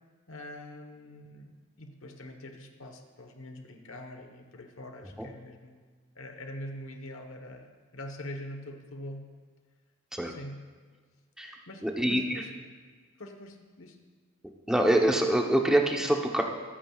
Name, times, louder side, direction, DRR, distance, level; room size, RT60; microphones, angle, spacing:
voice 1, 0.3-5.8 6.1-9.3 10.2-10.6 11.7-12.6 13.2-14.0, left 1 dB, 70° left, 5 dB, 1.3 m, -44 dB
voice 2, 11.4-12.4 14.7-16.4, right 1 dB, 5° right, 1 dB, 0.9 m, -25 dB
24.0 x 8.7 x 2.4 m, 1.5 s
head